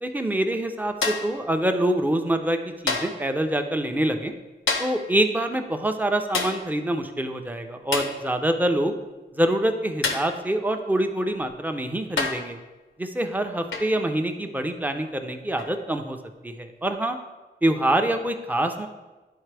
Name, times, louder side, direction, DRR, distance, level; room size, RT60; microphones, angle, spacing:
voice 1, 0.0-2.6 2.8-4.3 4.8-8.9 9.3-12.6 13.0-16.2 16.4-17.2 17.6-18.9, right 1 dB, 10° right, 5 dB, 0.6 m, -25 dB
sound 1, 1.0-1.4 2.9-3.3 4.7-5.1 6.3-6.7 7.9-8.2 10.0-10.4 11.4-11.5 12.2-12.5 13.7-14.0 15.6-15.8, left 4 dB, 80° left, 0.7 m, -28 dB
10.5 x 4.0 x 3.4 m, 1.2 s
wide cardioid pair, 75°, 20 cm